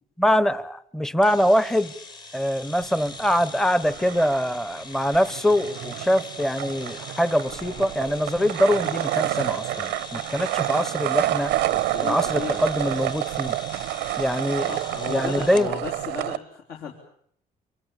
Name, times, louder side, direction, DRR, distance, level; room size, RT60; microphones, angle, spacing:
voice 1, 0.2-1.9 2.3-11.5 12.0-13.6 14.2-14.7 15.1-15.7, equal, 5° left, 17 dB, 1.0 m, -23 dB
sound 1, 1.2-15.7, left 3 dB, 25° left, 1.4 m, -42 dB
sound 2, 2.8-3.6 3.8-16.4, right 16 dB, 90° right, 1.1 m, -29 dB
voice 2, 11.7-12.6 14.7-16.9, left 6 dB, 70° left, -1 dB, 3.7 m, -35 dB
26.0 x 24.0 x 7.2 m, 0.66 s
cardioid pair, 110°, 17 cm